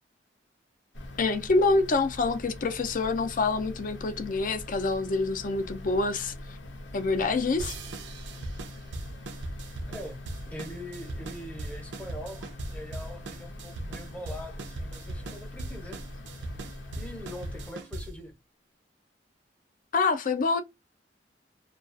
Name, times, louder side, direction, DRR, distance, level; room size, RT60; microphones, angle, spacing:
sound 1, 0.9-17.7, left 1 dB, 90° left, 0.7 m, -43 dB
voice 1, 1.2-6.3 6.9-7.8 19.9-20.6, left 3 dB, 50° left, 0.5 m, -26 dB
sound 2, 7.6-18.3, right 2 dB, 75° right, 0.4 m, -39 dB
voice 2, 9.9-10.2 10.5-16.0 16.7-18.3, left 1 dB, 10° left, 0.6 m, -42 dB
2.3 x 2.3 x 2.4 m
head